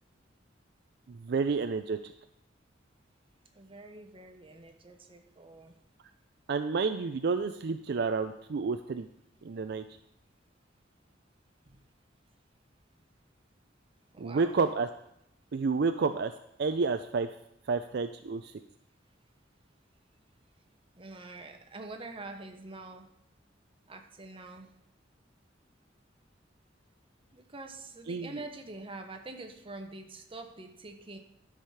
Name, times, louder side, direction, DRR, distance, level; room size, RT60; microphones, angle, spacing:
voice 1, 1.1-2.0 6.5-9.1 9.4-9.8 14.2-14.9 15.5-16.3 16.6-17.3 17.7-18.5 28.1-28.4, right 4 dB, 60° right, 8 dB, 0.4 m, -30 dB
voice 2, 3.5-5.8 11.7-11.8 14.1-14.6 21.0-23.1 23.9-24.7 27.3-31.2, right 2 dB, 30° right, 5 dB, 1.0 m, -45 dB
12.0 x 4.9 x 5.6 m, 0.76 s
head